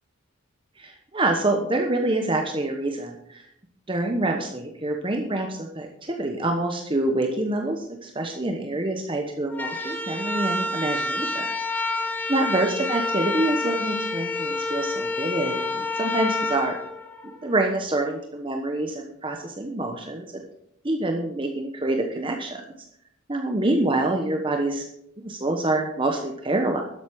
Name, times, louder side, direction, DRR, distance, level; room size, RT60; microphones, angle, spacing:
voice 1, 0.8-3.4 3.9-12.0 12.3-16.7 17.2-20.4 20.8-22.6 23.3-24.9 25.2-26.8, right 2 dB, 25° right, 3 dB, 1.1 m, -26 dB
sound 1, 9.5-17.6, left 2 dB, 10° left, 1.3 m, -28 dB
12.5 x 7.9 x 6.3 m, 0.73 s
head